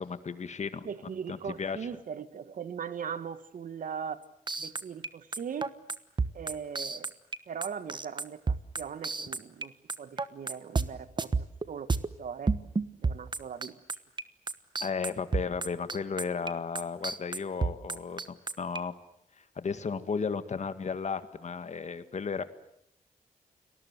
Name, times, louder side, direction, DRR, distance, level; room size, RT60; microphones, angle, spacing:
voice 1, 0.0-0.9 1.3-1.8 14.8-18.9 19.4-22.4, left 5 dB, 55° left, 11 dB, 1.9 m, -34 dB
voice 2, 0.8-4.2 4.6-5.7 6.3-7.1 7.5-11.9 12.2-12.5 13.0-13.8, right 7 dB, 75° right, 13 dB, 1.5 m, -39 dB
sound 1, 4.5-9.6 9.9-10.9 11.2-12.1 12.5-14.2 14.5-18.8, right 4 dB, 35° right, 1.2 m, -30 dB
29.5 x 20.5 x 8.1 m, 0.76 s
cardioid pair, 90°, 14 cm